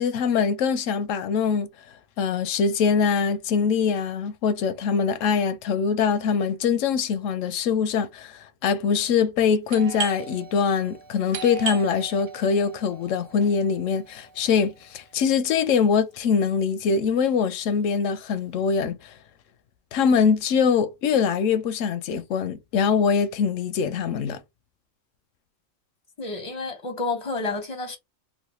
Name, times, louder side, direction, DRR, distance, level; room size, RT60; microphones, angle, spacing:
voice 1, 0.0-1.7 2.2-19.1 19.9-24.4, left 6 dB, 85° left, 1.0 m, -23 dB
Doorbell, 9.7-15.1, right 6 dB, 85° right, 1.1 m, -37 dB
voice 2, 26.2-28.0, left 3 dB, 35° left, 0.6 m, -30 dB
3.2 x 2.4 x 2.9 m
omnidirectional pair, 1.3 m